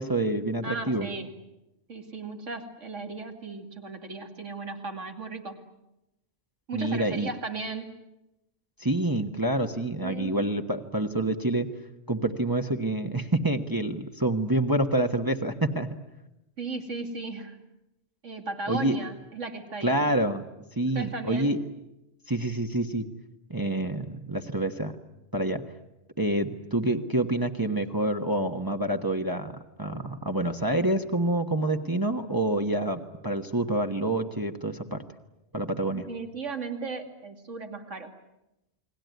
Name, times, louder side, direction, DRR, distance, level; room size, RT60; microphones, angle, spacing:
voice 1, 0.0-1.1 6.7-7.3 8.8-11.7 12.1-15.9 18.7-19.0 19.8-20.5 20.8-21.6 22.3-23.1 23.5-24.9 25.3-25.6 26.2-29.5 29.8-35.0 35.5-36.1, right 1 dB, 20° right, 4 dB, 1.3 m, -27 dB
voice 2, 0.6-1.3 1.9-5.6 6.7-7.9 10.0-10.4 16.6-17.6 18.2-20.0 20.9-21.6 35.9-38.1, right 3 dB, 90° right, 5 dB, 2.9 m, -36 dB
29.5 x 21.5 x 9.4 m, 0.95 s
omnidirectional pair, 1.2 m